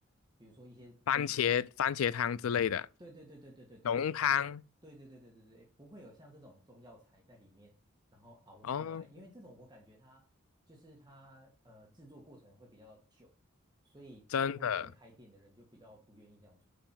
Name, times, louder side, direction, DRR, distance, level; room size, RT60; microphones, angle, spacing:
voice 1, 0.4-1.4 3.0-4.0 4.8-7.7 8.1-10.3 10.7-13.3 13.8-16.6, equal, 20° right, 1.5 m, -56 dB
voice 2, 1.1-2.9 3.8-4.6 8.7-9.0 14.3-14.9, left 8 dB, 85° left, 0.4 m, -30 dB
6.9 x 5.2 x 5.7 m
head